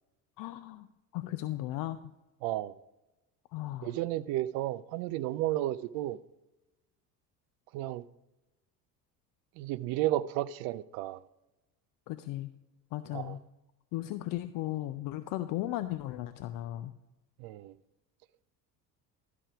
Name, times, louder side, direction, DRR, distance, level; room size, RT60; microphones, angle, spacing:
voice 1, 0.4-0.9 1.1-2.1 3.5-3.9 12.1-12.5 12.9-13.4 13.9-16.9, left 15 dB, 45° left, 0.5 m, -36 dB
voice 2, 2.4-2.7 3.8-6.2 7.7-8.0 9.6-11.2 13.1-13.4 17.4-17.7, right 14 dB, 45° right, 0.5 m, -32 dB
12.0 x 4.7 x 4.9 m
figure-of-eight pair, 65°, 50 cm